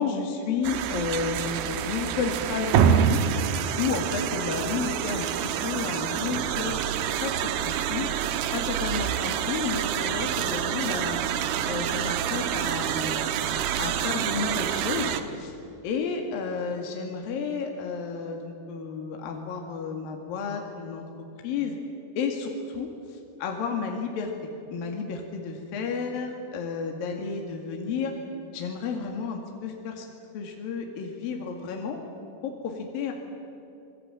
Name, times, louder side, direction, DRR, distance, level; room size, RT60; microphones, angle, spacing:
voice 1, 0.0-3.2 3.8-6.8 7.1-7.4 7.6-8.1 8.5-11.2 11.6-13.3 13.8-15.6 15.8-21.0 21.4-21.8 22.2-22.9 23.4-24.3 24.7-28.2 28.5-30.1 30.3-32.0 32.4-33.1, left 5 dB, 60° left, 2 dB, 3.7 m, -31 dB
sound 1, 0.6-15.2, right 9 dB, 70° right, 2.8 m, -27 dB
27.0 x 21.0 x 9.0 m, 2.7 s
omnidirectional pair, 5.0 m